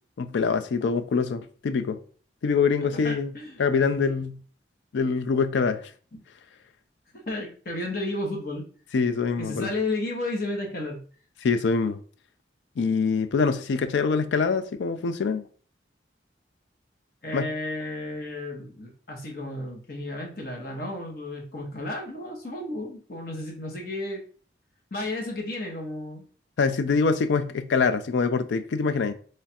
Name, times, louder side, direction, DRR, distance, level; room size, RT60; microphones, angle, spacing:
voice 1, 0.2-2.0 2.4-3.3 3.6-4.4 4.9-5.9 8.9-9.7 11.4-12.0 12.8-15.5 17.3-17.5 26.6-29.1, left 5 dB, 75° left, 0.4 m, -24 dB
voice 2, 2.8-3.7 6.1-6.2 7.1-8.6 9.4-11.0 17.2-24.2 24.9-26.3, left 2 dB, 50° left, 1.0 m, -33 dB
3.2 x 2.4 x 4.2 m
head